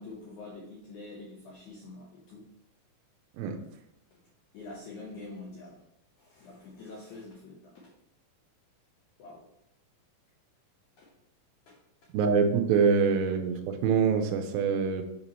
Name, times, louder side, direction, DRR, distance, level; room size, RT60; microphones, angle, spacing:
voice 1, 0.0-2.5 4.5-5.8 6.2-7.9 9.2-9.4 11.0-11.1 11.7-11.8, left 3 dB, 80° left, -2 dB, 1.7 m, -46 dB
voice 2, 12.1-15.0, right 6 dB, 80° right, 5 dB, 2.3 m, -25 dB
7.3 x 5.4 x 3.0 m, 0.80 s
omnidirectional pair, 4.4 m